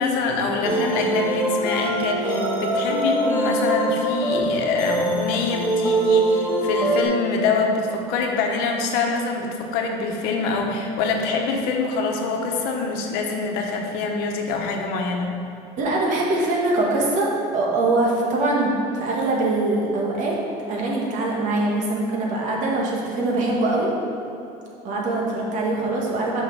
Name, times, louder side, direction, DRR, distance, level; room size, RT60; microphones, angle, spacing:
voice 1, 0.0-15.3, left 4 dB, 70° left, 2 dB, 1.1 m, -25 dB
sound 1, 0.6-7.0, right 1 dB, 15° right, 1.2 m, -23 dB
voice 2, 15.8-20.3 20.7-23.9 24.8-26.4, right 2 dB, 50° right, -2 dB, 1.7 m, -23 dB
6.4 x 5.6 x 5.6 m, 2.8 s
cardioid pair, 150°, 17 cm